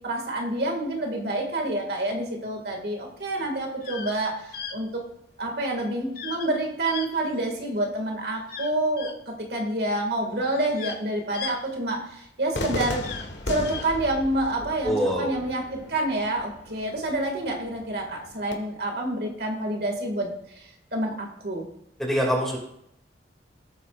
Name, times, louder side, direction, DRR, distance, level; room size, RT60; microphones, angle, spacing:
voice 1, 0.0-5.0 5.4-13.1 13.5-20.3 20.6-21.7, right 1 dB, 60° right, 1 dB, 2.2 m, -28 dB
sound 1, 3.8-4.2 4.5-4.7 6.1-6.5 6.8-7.7 8.4-9.1 10.0-10.1 10.5-12.3 12.9-13.9, left 7 dB, 55° left, 1.4 m, -37 dB
Cheering / Fireworks, 12.5-18.5, left 2 dB, 75° left, 1.6 m, -36 dB
voice 2, 14.8-15.4 22.0-22.6, equal, ahead, -2 dB, 2.5 m, -24 dB
18.5 x 8.0 x 2.5 m, 0.76 s
head